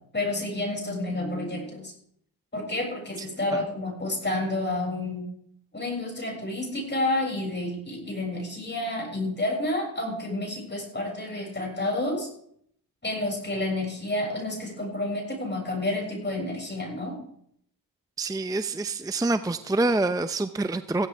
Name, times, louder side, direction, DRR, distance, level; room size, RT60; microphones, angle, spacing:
voice 1, 0.1-1.9 2.5-5.3 5.7-12.3 13.0-17.2, left 2 dB, 25° left, 0 dB, 6.9 m, -30 dB
voice 2, 18.2-21.1, right 2 dB, 10° right, 11 dB, 0.7 m, -26 dB
15.5 x 13.0 x 3.6 m, 0.67 s
supercardioid pair, 55°, 46 cm